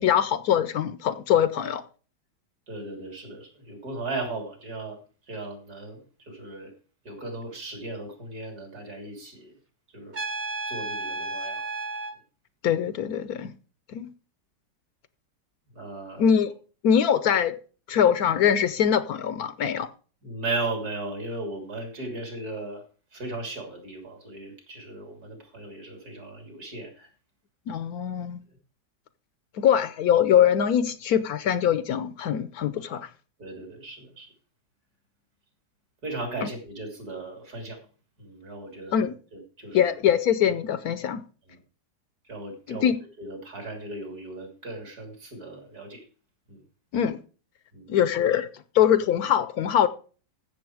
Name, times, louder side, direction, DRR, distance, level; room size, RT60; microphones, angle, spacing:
voice 1, 0.0-1.8 12.6-13.5 13.9-14.1 16.2-16.5 16.8-17.5 17.9-19.9 27.7-28.4 29.6-33.1 38.9-39.2 39.7-41.2 42.7-43.0 46.9-47.2 47.9-48.5 48.7-49.9, left 9 dB, 70° left, 1.1 m, -23 dB
voice 2, 2.7-5.0 5.3-6.7 7.1-9.5 9.9-10.2 10.7-11.7 15.7-16.3 20.2-22.8 23.1-27.1 33.4-34.3 36.0-37.8 38.2-39.9 41.5-41.6 42.2-42.9 43.2-46.0 46.5-46.6 47.7-47.9, right 2 dB, 65° right, 3.8 m, -36 dB
Trumpet, 10.1-12.2, right 3 dB, 30° right, 0.9 m, -32 dB
15.0 x 7.0 x 4.8 m
omnidirectional pair, 1.8 m